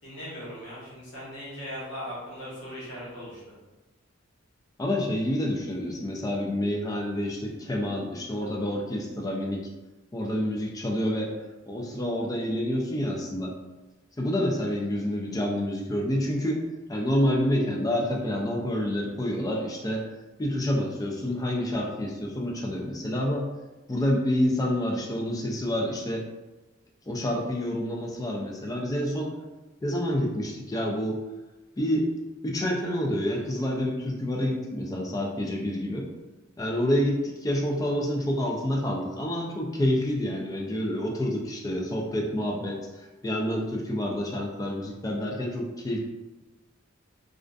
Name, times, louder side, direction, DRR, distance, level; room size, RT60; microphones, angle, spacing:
voice 1, 0.0-3.4, equal, 70° left, -8 dB, 1.1 m, -39 dB
voice 2, 4.8-9.7 10.1-11.3 11.7-13.5 14.2-16.6 16.9-20.1 20.4-23.5 23.9-26.3 27.1-29.3 29.8-31.2 31.8-32.1 32.4-36.1 36.6-46.0, left 1 dB, 20° left, 0 dB, 0.3 m, -28 dB
2.4 x 2.4 x 2.2 m, 1.1 s
head